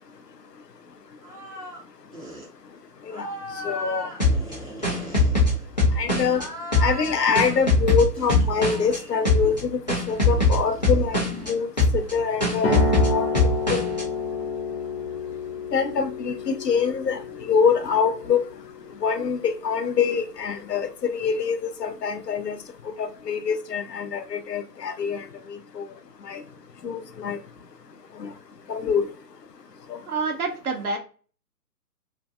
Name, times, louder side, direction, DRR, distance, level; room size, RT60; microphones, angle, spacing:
sound 1, 1.2-1.8 2.1-2.5 3.1-5.9 6.3-7.7 8.1-9.2 10.3-12.1, left 1 dB, 25° right, 0.5 m, -37 dB
voice 1, 3.6-4.1 6.0-6.4 6.8-9.8 10.1-11.7 11.9-12.8 13.1-13.3 13.7-13.8 15.7-17.2 17.5-18.4 19.0-22.6 23.0-25.8 26.3-26.4 26.8-27.4 28.2-28.3 28.7-29.1 29.9-30.0, left 6 dB, 80° left, 0.6 m, -25 dB
sound 2, 4.2-6.4 6.7-9.0 9.2-9.6 9.9-11.5 11.8-12.1 12.4-14.0, left 2 dB, 30° left, 0.5 m, -21 dB
sound 3, 12.6-19.8, left 3 dB, 60° left, 0.9 m, -30 dB
voice 2, 30.1-31.0, right 4 dB, 60° right, 0.8 m, -27 dB
2.5 x 2.3 x 2.3 m
figure-of-eight pair, 135°, 49 cm